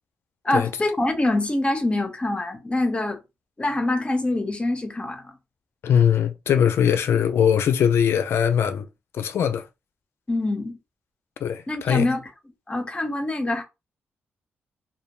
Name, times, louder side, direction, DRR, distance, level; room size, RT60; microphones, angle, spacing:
voice 1, 0.4-3.2 3.6-5.2 10.3-10.8 11.7-12.2 12.7-13.6, left 2 dB, 25° left, 0.7 m, -25 dB
voice 2, 5.8-8.9 9.1-9.7 11.4-12.1, left 8 dB, 75° left, 0.3 m, -21 dB
2.2 x 2.0 x 2.9 m
cardioid pair, 70°, 4 cm